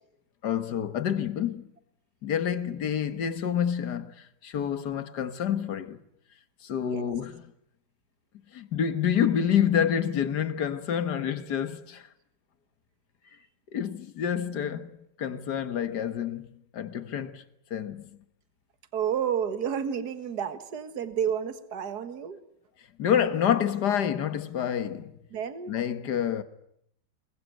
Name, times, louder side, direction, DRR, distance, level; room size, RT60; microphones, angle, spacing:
voice 1, 0.4-1.7 2.2-6.0 6.6-7.4 8.5-12.0 13.7-16.5 16.7-17.4 17.7-18.1 23.0-25.1 25.7-26.4, left 9 dB, 65° left, 1.9 m, -28 dB
voice 2, 6.8-7.2 18.9-22.4 25.3-25.8, right 8 dB, 60° right, 2.2 m, -31 dB
27.0 x 21.5 x 9.2 m
omnidirectional pair, 2.0 m